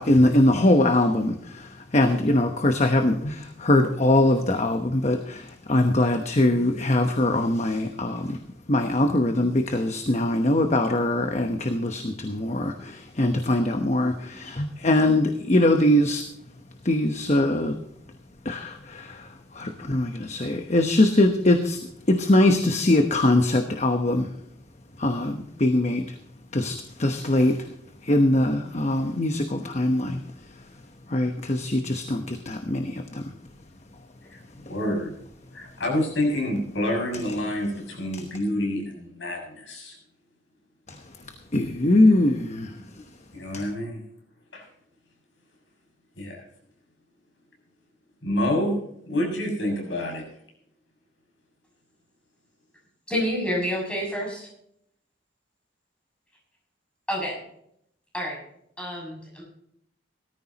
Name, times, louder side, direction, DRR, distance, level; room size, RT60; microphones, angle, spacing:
voice 1, 0.0-1.7 1.9-8.4 8.7-16.2 16.8-17.7 18.4-19.2 19.6-21.8 22.1-24.3 25.0-26.0 26.5-27.6 28.1-30.2 31.1-33.2 41.5-42.7, left 1 dB, 35° left, 6 dB, 1.0 m, -22 dB
voice 2, 34.7-35.2 35.5-40.0 42.8-42.9 43.3-44.0 44.5-44.6 46.2-46.4 48.2-48.8 49.1-50.2, left 1 dB, 80° left, 0 dB, 6.8 m, -27 dB
voice 3, 53.1-54.4 57.1-57.3 58.1-58.4 58.8-59.4, equal, 5° left, -3 dB, 6.9 m, -28 dB
18.0 x 14.0 x 2.9 m, 0.72 s
head